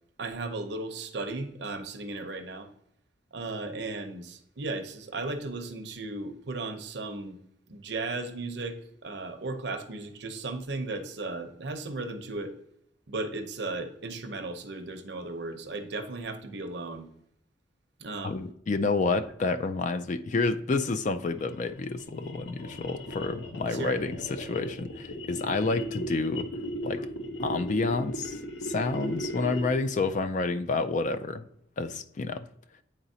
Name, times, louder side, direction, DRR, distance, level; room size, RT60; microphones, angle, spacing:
voice 1, 0.2-2.7 3.3-7.4 7.7-12.5 13.1-17.1 18.0-18.4 23.7-24.0, right 3 dB, 60° right, 0.7 m, -35 dB
voice 2, 18.2-26.5 26.8-27.1 27.4-31.5 31.8-32.5, left 3 dB, 40° left, 0.3 m, -29 dB
sound 1, 21.2-29.9, equal, 80° left, 1.0 m, -37 dB
8.9 x 4.0 x 2.7 m
head